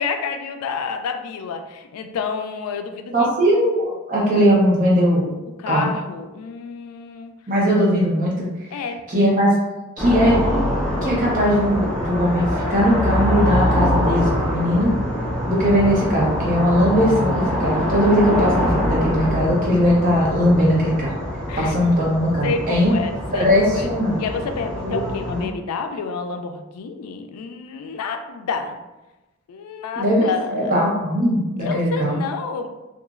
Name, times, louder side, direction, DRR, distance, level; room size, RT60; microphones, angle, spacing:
voice 1, 0.0-3.3 5.6-7.3 7.8-7.9 8.7-9.1 21.5-21.8 22.4-23.9 24.2-28.8 29.5-30.8 31.6-32.7, left 5 dB, 90° left, 6 dB, 0.3 m, -29 dB
voice 2, 3.1-5.3 5.7-5.9 7.5-8.8 9.1-9.6 10.0-10.4 11.0-14.9 15.5-21.2 21.6-22.9 23.3-24.1 24.8-25.5 30.0-32.2, equal, 40° right, -5 dB, 0.7 m, -19 dB
sound 1, 10.0-25.5, equal, 5° left, 0.5 m, -24 dB
2.9 x 2.3 x 2.4 m, 1.1 s
head